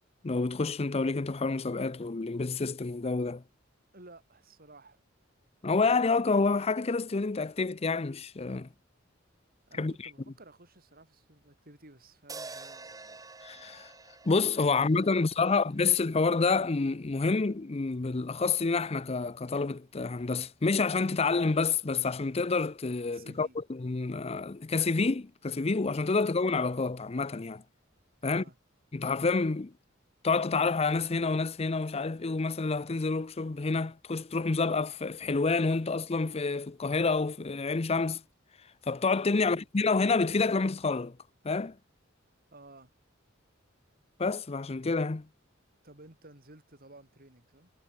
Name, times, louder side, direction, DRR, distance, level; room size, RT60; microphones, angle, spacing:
voice 1, 0.2-3.4 5.6-8.7 9.8-9.9 13.4-13.9 14.3-27.6 28.2-28.4 28.9-29.7 30.2-38.2 38.9-41.2 41.4-41.8 44.2-45.3, left 4 dB, 30° left, 0.6 m, -28 dB
voice 2, 3.9-5.0 9.7-13.2 14.7-14.8 15.1-15.7 23.1-23.6 28.2-28.6 39.4-39.7 42.5-42.9 45.8-47.7, right 2 dB, 50° right, 6.0 m, -54 dB
sound 1, 12.3-16.6, right 3 dB, 20° right, 1.7 m, -48 dB
head